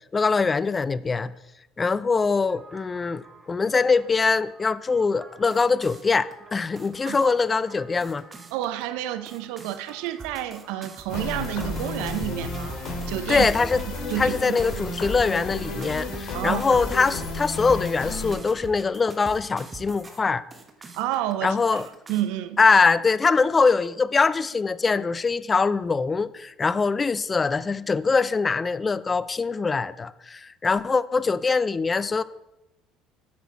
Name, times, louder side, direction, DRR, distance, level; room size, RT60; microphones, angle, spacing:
voice 1, 0.1-1.3 1.8-8.2 13.3-13.8 14.2-20.4 21.4-21.9 22.6-32.2, left 4 dB, 25° left, 18 dB, 0.3 m, -23 dB
sound 1, 2.5-20.2 20.5-21.3 21.8-22.2, right 3 dB, 30° right, 1.1 m, -44 dB
voice 2, 8.5-12.8 13.1-13.5 14.1-14.6 16.3-16.6 20.9-21.8 22.1-22.6, right 13 dB, 75° right, 13 dB, 0.5 m, -30 dB
sound 2, 11.1-18.3, left 3 dB, 60° left, 2.2 m, -32 dB
8.3 x 6.1 x 4.2 m, 0.95 s
supercardioid pair, 80°, 0 cm